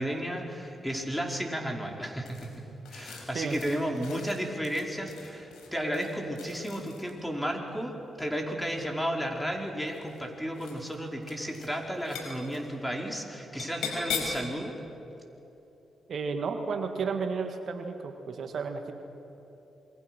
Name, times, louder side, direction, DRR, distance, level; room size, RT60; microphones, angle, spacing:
voice 1, 0.0-2.6 2.9-14.8, equal, 5° left, 1 dB, 4.9 m, -33 dB
sound 1, 2.3-7.3 8.5-9.1 9.8-10.3 10.5-11.0 11.2-11.7 11.9-12.6 13.6-14.5, left 5 dB, 80° left, 5.2 m, -39 dB
voice 2, 16.1-18.9, right 5 dB, 65° right, 5 dB, 1.9 m, -32 dB
28.0 x 22.5 x 6.3 m, 3.0 s
supercardioid pair, 45°, 0 cm